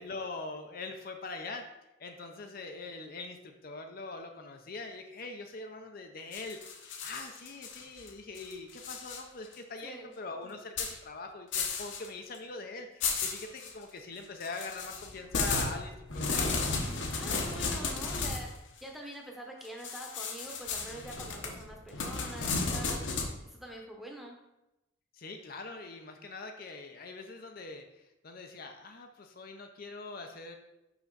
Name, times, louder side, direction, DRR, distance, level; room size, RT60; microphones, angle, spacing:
voice 1, 0.0-1.6 2.0-6.7 7.0-16.6 25.1-27.8 28.2-30.6, left 3 dB, 45° left, 4 dB, 0.5 m, -43 dB
sound 1, 6.3-8.1 8.4-9.2 9.5-9.6 10.8-11.0 11.5-12.1 12.3-12.4 13.0-13.7 14.4-18.5 19.8-23.3, left 4 dB, 65° left, 0.9 m, -34 dB
voice 2, 9.8-10.1 17.1-23.1 23.4-24.4, right 1 dB, ahead, 0 dB, 0.9 m, -45 dB
5.8 x 5.4 x 3.9 m, 0.92 s
head